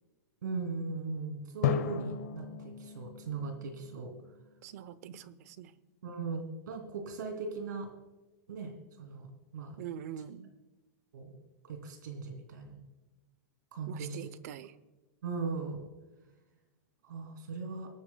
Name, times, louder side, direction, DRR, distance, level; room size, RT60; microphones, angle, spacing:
voice 1, 0.4-4.1 6.0-7.9 8.5-8.7 9.0-9.3 9.5-9.8 11.1-11.3 11.7-12.8 13.7-14.3 15.2-15.9 17.0-17.9, right 4 dB, 80° right, 4 dB, 2.9 m, -38 dB
Drum, 1.6-4.5, left 11 dB, 60° left, 1.0 m, -35 dB
voice 2, 4.6-5.8 9.8-10.5 13.9-14.7, right 10 dB, 55° right, 16 dB, 0.7 m, -44 dB
25.0 x 9.7 x 2.3 m, 1.1 s
supercardioid pair, 150°, 10 cm